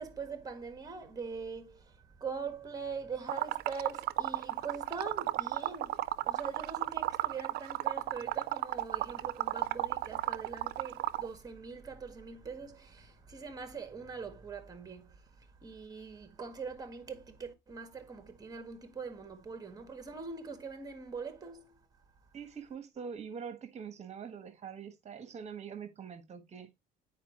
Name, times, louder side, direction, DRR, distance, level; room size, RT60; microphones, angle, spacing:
voice 1, 0.0-21.9, right 5 dB, 20° right, 1.6 m, -42 dB
Liquid, 3.3-11.3, right 16 dB, 75° right, 0.4 m, -33 dB
voice 2, 22.3-26.7, right 6 dB, 40° right, 1.2 m, -44 dB
9.1 x 4.7 x 3.0 m
cardioid pair, 110°, 17 cm